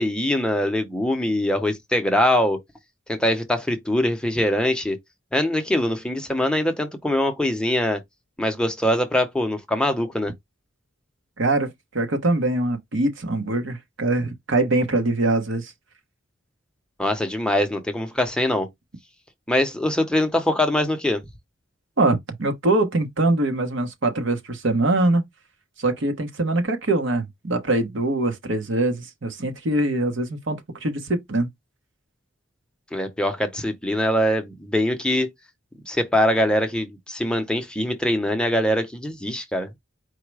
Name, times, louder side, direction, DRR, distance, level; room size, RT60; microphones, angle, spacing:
voice 1, 0.0-2.6 3.1-5.0 5.3-8.0 8.4-10.3 17.0-18.7 19.5-21.2 32.9-35.3 35.9-39.8, left 1 dB, 5° left, 0.7 m, -23 dB
voice 2, 11.4-15.7 22.0-25.2 25.8-31.5, right 2 dB, 70° right, 1.1 m, -23 dB
4.7 x 2.1 x 4.6 m
head